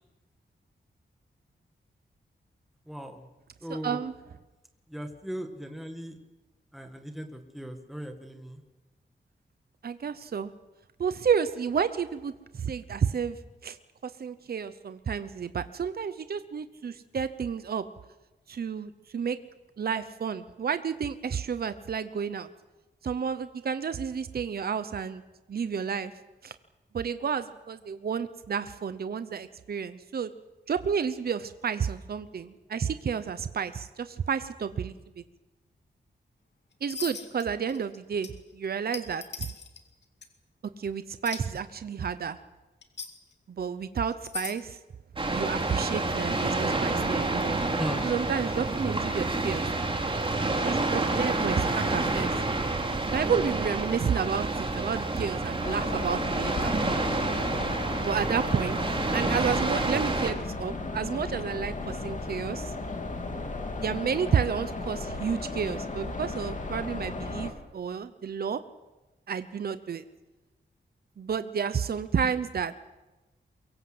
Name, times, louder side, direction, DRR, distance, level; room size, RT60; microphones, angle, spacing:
voice 1, 2.9-3.2 3.6-4.0 4.9-6.2 6.7-8.6 47.7-48.1, equal, ahead, 5 dB, 1.8 m, -37 dB
voice 2, 3.7-4.1 9.8-10.5 11.0-13.4 13.6-13.8 14.0-17.9 18.5-19.4 19.8-22.5 23.0-25.2 25.5-26.1 26.4-26.5 26.9-30.3 30.7-35.2 36.8-39.5 40.8-42.4 43.5-44.8 45.3-47.6 48.0-49.7 50.0-50.1 50.6-52.3 53.1-56.7 58.0-62.7 63.8-68.6 69.3-70.0 71.2-72.7, right 6 dB, 55° right, 12 dB, 0.9 m, -31 dB
sound 1, 36.9-37.4 37.7-38.0 38.2-38.3 38.9-39.8 40.2-40.3 41.3-41.4 42.8-43.1 44.1-44.6, left 5 dB, 70° left, 2.5 m, -37 dB
sound 2, 45.2-60.3, right 2 dB, 30° right, 3.3 m, -28 dB
sound 3, 55.6-67.5, left 3 dB, 40° left, 2.8 m, -35 dB
23.5 x 23.0 x 7.9 m, 1.1 s
wide cardioid pair, 175°, 19 cm